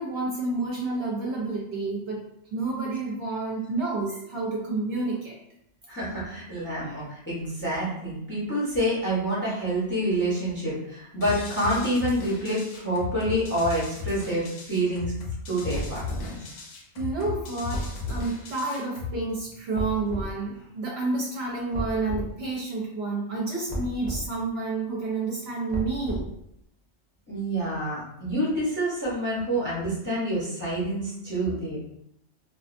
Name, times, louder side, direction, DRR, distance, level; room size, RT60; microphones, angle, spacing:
voice 1, 0.0-2.3 2.5-5.4 17.0-26.3, right 3 dB, 60° right, -3 dB, 0.8 m, -30 dB
voice 2, 5.9-15.1 15.5-16.4 27.3-31.8, right 1 dB, 10° left, -7 dB, 0.7 m, -27 dB
sound 1, 11.2-19.2, left 4 dB, 80° left, 0.9 m, -36 dB
sound 2, 15.7-16.4 17.7-18.3 19.7-20.3 21.7-22.3 23.7-24.3 25.7-26.4, equal, 75° right, 0.4 m, -33 dB
2.4 x 2.4 x 2.5 m, 0.75 s
omnidirectional pair, 1.3 m